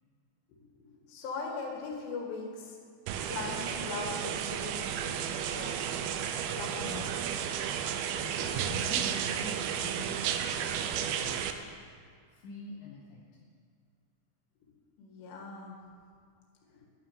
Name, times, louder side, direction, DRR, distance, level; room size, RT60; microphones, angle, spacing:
voice 1, 0.5-2.8 3.3-4.8 5.4-5.9 6.5-7.2 15.0-15.8 16.7-16.8, left 4 dB, 90° left, 0 dB, 4.5 m, -40 dB
sound 1, 3.1-11.5, right 8 dB, 90° right, 2.1 m, -33 dB
voice 2, 6.8-7.2 8.1-11.7 12.3-13.4, left 3 dB, 60° left, -5 dB, 2.7 m, -46 dB
12.0 x 9.9 x 9.2 m, 2.1 s
omnidirectional pair, 5.4 m